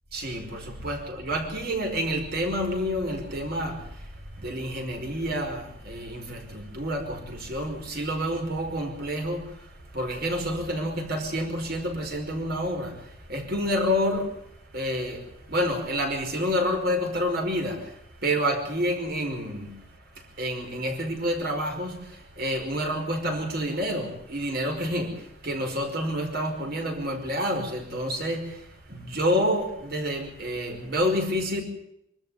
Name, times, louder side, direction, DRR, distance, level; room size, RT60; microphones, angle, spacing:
voice 1, 0.1-14.3 14.7-19.7 20.1-31.6, equal, 50° right, 3 dB, 5.2 m, -29 dB
24.0 x 13.0 x 9.5 m, 0.78 s
head